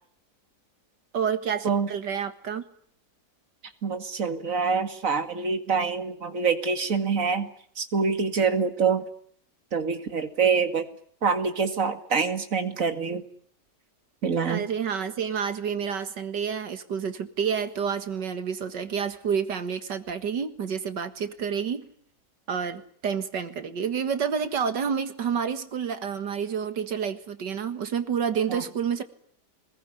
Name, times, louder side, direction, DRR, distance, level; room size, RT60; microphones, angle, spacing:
voice 1, 1.1-2.6 14.5-21.9 22.5-29.0, right 7 dB, 85° right, 2.3 m, -29 dB
voice 2, 3.8-7.5 7.8-9.0 9.7-10.9 11.2-13.2 14.2-14.7 28.5-28.6, right 5 dB, 50° right, 2.4 m, -25 dB
25.0 x 21.0 x 10.0 m
omnidirectional pair, 1.8 m